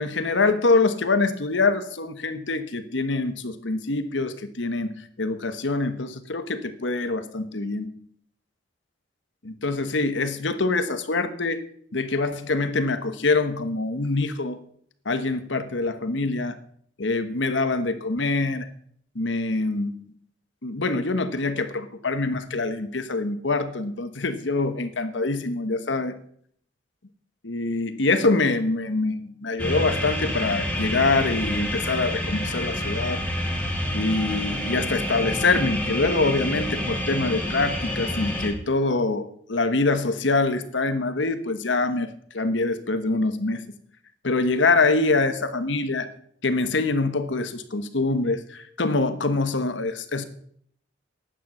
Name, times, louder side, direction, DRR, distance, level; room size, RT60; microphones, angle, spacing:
voice 1, 0.0-4.9 5.2-7.9 9.4-11.6 11.9-14.6 15.0-16.6 17.0-18.7 19.1-19.9 20.6-26.2 27.4-33.2 33.9-42.1 42.3-43.6 44.2-46.1 46.4-50.2, left 3 dB, 80° left, 10 dB, 1.2 m, -25 dB
sound 1, 29.6-38.5, left 1 dB, 10° left, 2.4 m, -28 dB
11.0 x 9.3 x 6.2 m, 0.63 s
head